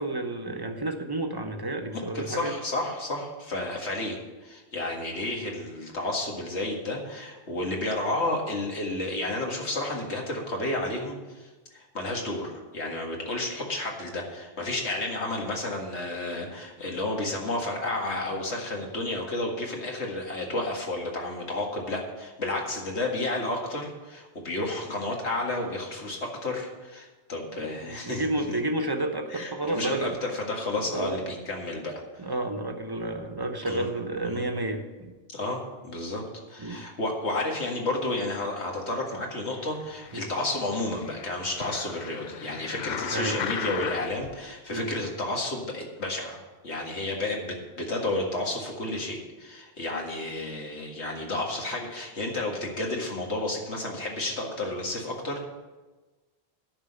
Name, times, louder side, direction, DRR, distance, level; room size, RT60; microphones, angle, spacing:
voice 1, 0.0-2.6 27.6-30.2 30.8-31.3 32.2-35.1 36.6-36.9 40.1-40.3 43.1-43.4 44.7-44.9, right 2 dB, 20° right, 5 dB, 1.0 m, -31 dB
voice 2, 1.9-28.3 29.3-32.3 33.7-33.9 34.2-34.4 35.3-36.2 36.5-46.4 46.6-55.5, left 2 dB, 90° left, 0 dB, 2.2 m, -31 dB
sound 1, 39.8-44.3 44.9-45.0, left 7 dB, 55° left, 0.6 m, -37 dB
10.0 x 6.2 x 8.6 m, 1.2 s
omnidirectional pair, 1.1 m